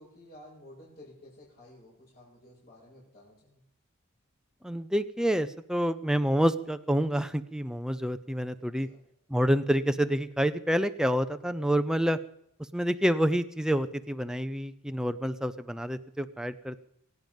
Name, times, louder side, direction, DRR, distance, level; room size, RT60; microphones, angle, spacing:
voice 1, 0.0-3.6 8.8-9.0, left 1 dB, 50° left, -8 dB, 7.1 m, -53 dB
voice 2, 4.6-8.9 9.3-12.2 12.7-16.8, equal, 5° right, 10 dB, 0.6 m, -28 dB
24.5 x 9.4 x 5.4 m, 0.75 s
head